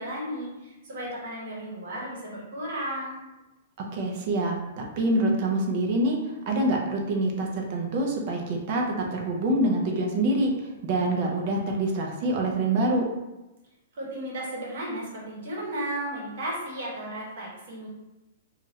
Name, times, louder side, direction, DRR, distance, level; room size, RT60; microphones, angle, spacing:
voice 1, 0.0-3.2 13.9-17.9, right 1 dB, 50° right, -4 dB, 1.0 m, -34 dB
voice 2, 3.9-6.2 6.5-10.5 10.8-13.1, right 1 dB, 30° right, 0 dB, 0.5 m, -25 dB
3.0 x 2.4 x 2.7 m, 1.0 s
hypercardioid pair, 180°, 0 cm